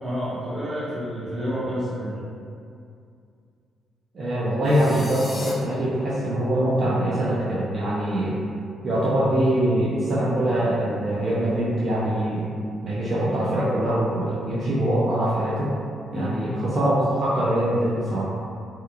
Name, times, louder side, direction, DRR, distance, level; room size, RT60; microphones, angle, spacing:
voice 1, 0.0-2.1 16.1-16.5, equal, 20° right, -9 dB, 0.9 m, -29 dB
voice 2, 4.1-8.4 8.8-12.5 12.8-15.7 16.1-18.2, right 1 dB, 50° right, -8 dB, 0.4 m, -23 dB
sound 1, 4.6-5.5, left 2 dB, 25° left, 0.4 m, -38 dB
2.8 x 2.2 x 2.2 m, 2.4 s
cardioid pair, 90°, 0 cm